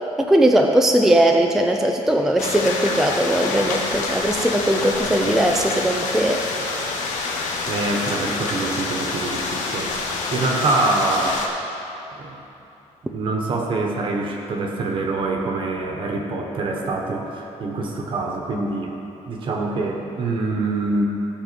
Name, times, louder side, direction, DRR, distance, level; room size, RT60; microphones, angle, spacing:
voice 1, 0.2-6.4, right 1 dB, 5° right, 2 dB, 0.4 m, -19 dB
sound 1, 2.4-11.5, left 3 dB, 85° left, 1.2 m, -27 dB
voice 2, 7.7-11.4 12.1-12.3 13.1-18.9 19.3-21.0, right 3 dB, 45° right, 1 dB, 1.2 m, -25 dB
15.0 x 5.3 x 7.0 m, 2.9 s
cardioid pair, 180°, 13 cm